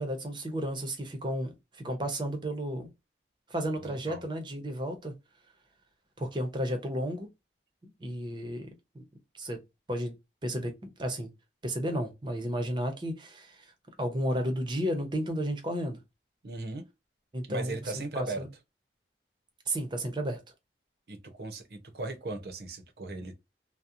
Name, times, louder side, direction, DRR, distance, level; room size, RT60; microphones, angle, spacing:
voice 1, 0.0-2.9 3.5-5.1 6.2-7.3 7.8-9.0 9.3-9.6 9.9-10.2 10.4-11.3 11.6-13.7 14.0-16.0 17.3-17.8 18.1-18.5 19.7-20.4, equal, 25° right, 0.6 m, -33 dB
voice 2, 3.8-4.2 16.4-16.9 17.5-18.4 21.1-23.3, right 2 dB, 60° right, 0.6 m, -38 dB
2.7 x 2.1 x 2.4 m
head